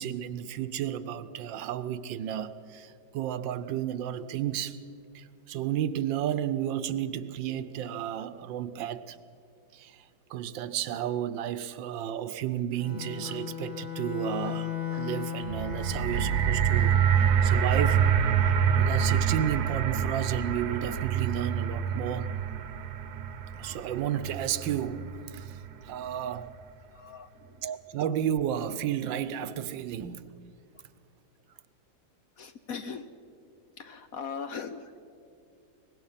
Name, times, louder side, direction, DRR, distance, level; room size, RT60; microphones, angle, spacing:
voice 1, 0.0-4.8 5.1-9.2 9.7-18.0 18.7-22.3 23.5-26.5 27.6-30.3, right 10 dB, 80° right, 13 dB, 1.4 m, -32 dB
Bark, 11.1-11.7 13.2-13.4 14.4-15.1 16.1-16.3 16.7-16.9 17.5-18.2, right 3 dB, 30° right, 1.3 m, -49 dB
Bowed string instrument, 12.7-17.3, left 9 dB, 90° left, 2.5 m, -36 dB
sound 1, 15.4-25.7 26.4-26.5, right 8 dB, 60° right, 1.3 m, -26 dB
voice 2, 26.8-27.6 32.4-33.1 33.8-35.0, left 6 dB, 60° left, 9 dB, 1.1 m, -40 dB
23.0 x 20.0 x 5.7 m, 2.4 s
omnidirectional pair, 2.1 m